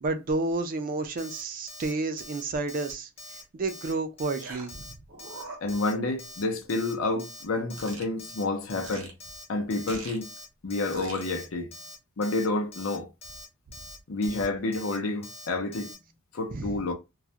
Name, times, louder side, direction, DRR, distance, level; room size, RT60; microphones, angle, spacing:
voice 1, 0.0-3.1 3.5-4.9 16.5-16.8, right 3 dB, 45° right, 0.4 m, -30 dB
Alarm, 1.2-1.4 1.7-1.9 2.2-2.4 2.7-2.9 3.2-3.4 3.7-3.9 4.2-4.4 4.7-4.9 5.2-5.4 5.7-5.9 6.2-6.4 6.7-6.9 7.2-7.4 7.7-7.9 8.2-8.4 8.7-8.9 9.2-9.4 9.7-9.9 10.2-10.4 10.7-10.9 11.2-11.4 11.7-11.9 12.2-12.5 12.7-13.0 13.2-13.5 13.7-14.0 14.2-14.5 14.7-15.0 15.2-15.5 15.7-16.0, left 1 dB, 30° left, 0.7 m, -44 dB
sound 1, 3.3-3.4 4.4-4.8 5.1-6.2 6.5-6.7 7.8-8.0 8.8-9.1 9.9-10.2 10.9-11.3, right 3 dB, 70° right, 0.8 m, -42 dB
voice 2, 5.6-9.1 9.5-10.3 10.6-11.7 12.2-13.1 14.1-15.9 16.3-16.9, left 2 dB, 75° left, 0.6 m, -29 dB
2.3 x 2.0 x 2.7 m
head